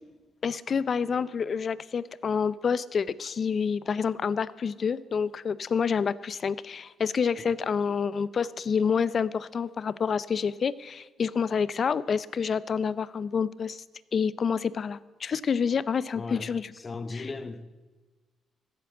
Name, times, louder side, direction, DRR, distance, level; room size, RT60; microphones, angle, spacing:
voice 1, 0.4-13.8 14.1-16.7 17.1-17.3, left 6 dB, 45° left, 0.5 m, -28 dB
voice 2, 16.2-17.7, left 3 dB, 30° left, 1.0 m, -37 dB
15.0 x 8.5 x 7.8 m
cardioid pair, 90°, 0 cm